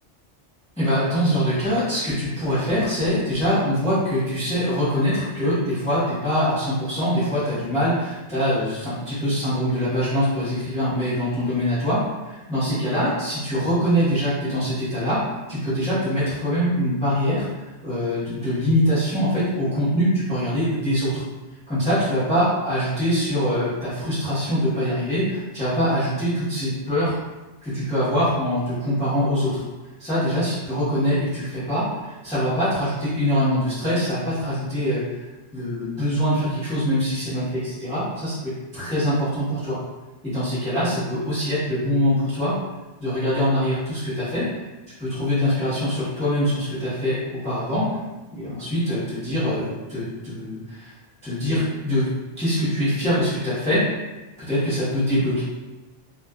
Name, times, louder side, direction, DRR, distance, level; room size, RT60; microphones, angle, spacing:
voice 1, 0.8-17.5 17.8-21.2 21.7-27.1 27.6-29.6 30.0-39.8 40.2-42.5 43.0-44.5 45.0-48.0 48.3-50.9 51.2-52.1 52.4-53.9 54.5-55.4, equal, 5° left, -13 dB, 0.9 m, -23 dB
2.4 x 2.4 x 2.3 m, 1.1 s
omnidirectional pair, 1.3 m